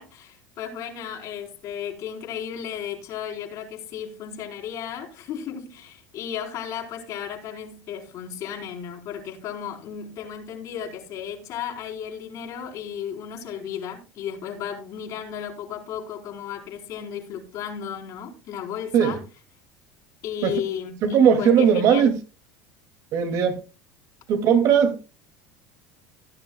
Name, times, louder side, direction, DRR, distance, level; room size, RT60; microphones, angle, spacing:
voice 1, 0.0-19.2 20.2-22.1, left 8 dB, 55° left, 4.5 m, -34 dB
voice 2, 21.0-22.2 23.1-23.6 24.3-25.0, right 7 dB, 50° right, 2.6 m, -18 dB
18.0 x 10.5 x 2.4 m
supercardioid pair, 130°, 7 cm